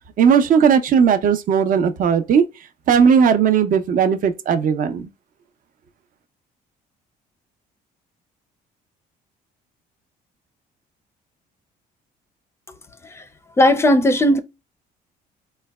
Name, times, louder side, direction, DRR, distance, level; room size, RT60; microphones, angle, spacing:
voice 1, 0.2-2.4 2.9-5.1, right 7 dB, 55° right, 0.6 m, -16 dB
voice 2, 13.6-14.4, left 1 dB, 15° left, 0.5 m, -16 dB
3.9 x 2.1 x 2.3 m
cardioid pair, 110°, 17 cm